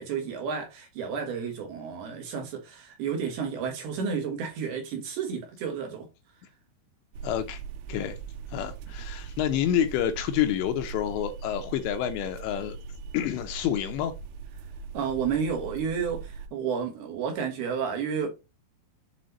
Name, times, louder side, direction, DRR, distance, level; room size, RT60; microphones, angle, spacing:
voice 1, 0.0-6.1 14.9-18.3, right 6 dB, 70° right, 2.7 m, -31 dB
sound 1, 7.1-16.5, right 6 dB, 90° right, 3.3 m, -40 dB
voice 2, 7.2-7.6 7.9-8.2 8.5-12.8 13.1-14.1, left 10 dB, 80° left, 2.7 m, -28 dB
7.8 x 4.2 x 4.0 m
omnidirectional pair, 5.5 m